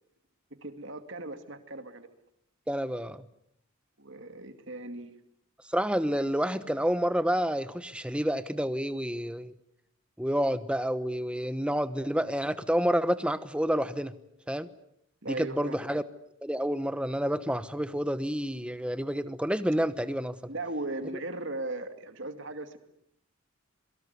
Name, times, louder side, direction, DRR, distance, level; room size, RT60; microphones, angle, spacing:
voice 1, 0.6-2.1 4.0-5.1 15.2-15.8 20.5-22.8, right 2 dB, 55° right, 8 dB, 2.4 m, -37 dB
voice 2, 2.7-3.2 5.7-9.5 10.2-14.1 14.5-14.7 15.3-16.0 16.4-20.4, equal, 5° right, 13 dB, 1.0 m, -29 dB
27.0 x 23.5 x 8.2 m, 0.73 s
head